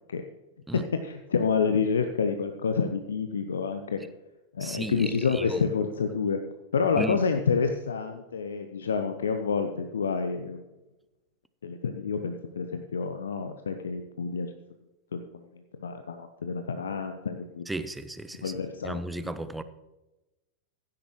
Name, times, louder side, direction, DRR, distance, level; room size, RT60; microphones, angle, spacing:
voice 1, 0.7-4.0 4.5-6.4 6.7-10.6 11.6-14.5 15.1-15.2 15.8-17.6 18.4-19.2, left 5 dB, 70° left, 0.7 m, -28 dB
voice 2, 4.6-5.6 7.0-7.2 17.7-18.5 18.8-19.6, right 2 dB, 5° right, 0.7 m, -34 dB
15.0 x 9.8 x 3.2 m
figure-of-eight pair, 90°, 0 cm